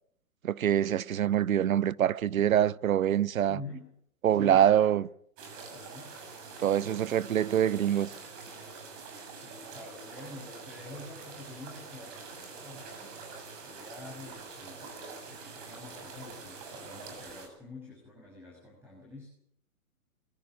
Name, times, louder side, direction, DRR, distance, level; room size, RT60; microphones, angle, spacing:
voice 1, 0.4-3.6 4.2-5.0 6.6-8.1, right 10 dB, 65° right, 0.9 m, -25 dB
voice 2, 3.5-3.9 4.3-5.0 5.7-6.1 6.6-7.0 9.3-12.9 13.6-19.3, left 2 dB, 5° right, 6.9 m, -47 dB
sound 1, 5.4-17.5, right 4 dB, 30° right, 7.2 m, -45 dB
22.5 x 15.5 x 9.2 m
hypercardioid pair, 140°, 44 cm